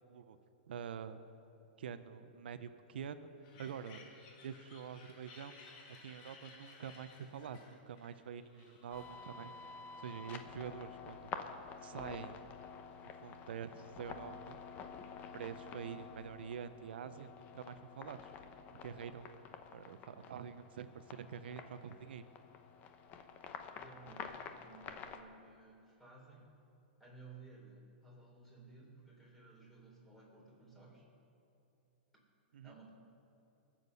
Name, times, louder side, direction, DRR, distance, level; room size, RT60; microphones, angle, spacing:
voice 1, 0.7-1.2 1.8-3.3 3.6-4.1 4.4-5.6 5.9-9.7 10.0-11.3 11.8-12.4 13.0-14.6 15.3-18.3 18.7-19.4 19.7-22.2 32.5-32.7, right 7 dB, 75° right, 10 dB, 0.8 m, -46 dB
sound 1, 3.4-9.5, left 4 dB, 45° left, 2.5 m, -58 dB
sound 2, 8.9-25.2, left 6 dB, 30° left, 0.9 m, -50 dB
voice 2, 23.7-26.5 27.0-31.1 32.6-32.9, right 3 dB, 5° left, -3 dB, 3.9 m, -57 dB
22.5 x 7.5 x 5.5 m, 2.7 s
hypercardioid pair, 140°, 6 cm